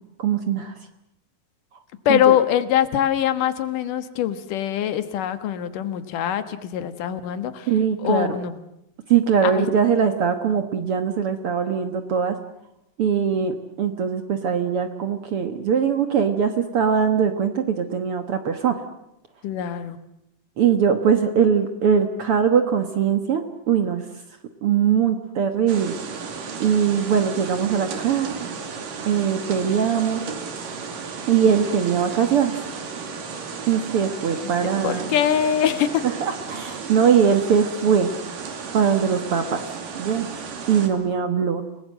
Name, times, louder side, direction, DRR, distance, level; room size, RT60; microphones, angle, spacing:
voice 1, 0.2-0.7 2.1-2.4 7.7-8.3 9.1-12.4 13.0-18.8 20.6-24.1 24.6-26.0 26.6-28.6 29.1-30.2 31.3-32.5 33.7-35.1 36.2-38.1 38.7-39.6 39.9-40.3 40.7-41.6, right 7 dB, 55° right, 8 dB, 1.8 m, -21 dB
voice 2, 2.1-7.7 8.0-8.6 9.4-9.7 19.4-20.0 34.8-36.0, left 10 dB, 75° left, 12 dB, 2.8 m, -23 dB
sound 1, 25.7-40.9, right 5 dB, 80° right, 4.2 m, -34 dB
29.5 x 19.0 x 7.6 m, 0.85 s
omnidirectional pair, 3.8 m